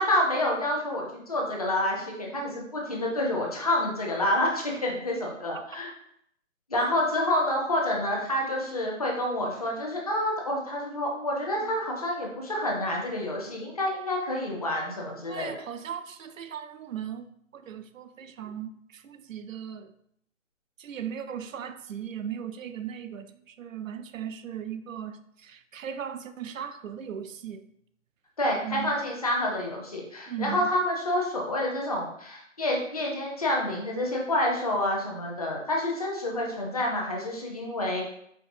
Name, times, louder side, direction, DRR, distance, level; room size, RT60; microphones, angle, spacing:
voice 1, 0.0-5.9 6.7-15.5 28.4-38.0, left 1 dB, 30° left, 0.6 m, -28 dB
voice 2, 15.3-17.3 17.5-19.9 20.8-27.6 28.6-29.0 30.3-30.7, right 9 dB, 85° right, 0.5 m, -37 dB
4.6 x 2.8 x 2.6 m
hypercardioid pair, 170°, 38 cm